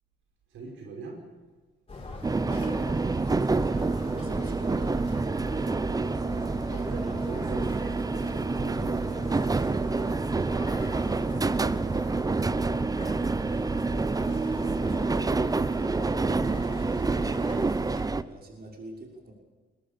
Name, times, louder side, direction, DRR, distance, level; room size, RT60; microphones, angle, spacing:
voice 1, 0.5-1.2 6.0-9.8 10.3-12.3, right 3 dB, 80° right, 0 dB, 5.7 m, -43 dB
sound 1, 1.9-18.1, left 2 dB, 30° left, 6.2 m, -42 dB
sound 2, 2.2-18.2, right 3 dB, 20° right, 0.7 m, -27 dB
voice 2, 4.1-5.0 14.2-19.3, right 2 dB, 50° right, 0 dB, 6.0 m, -44 dB
22.5 x 20.5 x 6.9 m, 1.4 s
cardioid pair, 90°, 20 cm